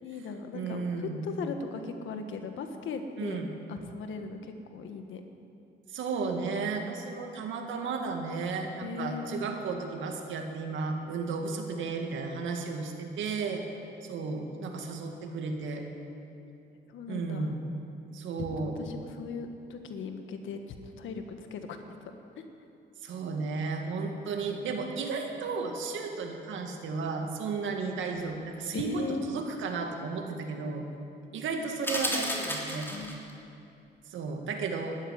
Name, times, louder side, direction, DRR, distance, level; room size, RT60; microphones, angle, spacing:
voice 1, 0.0-3.4 3.7-5.2 8.8-9.5 16.9-17.5 18.6-22.1 28.7-29.3 32.9-33.2, left 4 dB, 75° left, 6 dB, 1.6 m, -38 dB
voice 2, 0.5-1.2 3.2-3.5 5.9-13.6 14.0-15.9 17.1-17.6 18.1-18.7 23.0-30.8 31.3-32.9 34.1-34.9, right 4 dB, 75° right, 3 dB, 2.2 m, -34 dB
sound 1, 31.8-33.3, left 1 dB, 10° left, 3.1 m, -32 dB
12.5 x 11.0 x 10.0 m, 2.7 s
cardioid pair, 90°, 20 cm